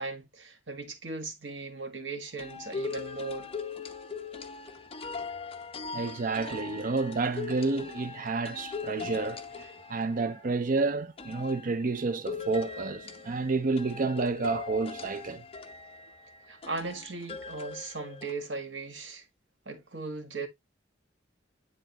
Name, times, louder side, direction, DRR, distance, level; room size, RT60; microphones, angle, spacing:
voice 1, 0.0-3.5 16.5-19.2 19.6-20.5, right 3 dB, 70° right, 1.6 m, -38 dB
sound 1, 2.4-10.6 11.2-18.3, left 5 dB, 30° left, 0.8 m, -40 dB
voice 2, 5.9-15.4, right 3 dB, 45° right, 0.5 m, -30 dB
10.0 x 3.8 x 2.9 m
head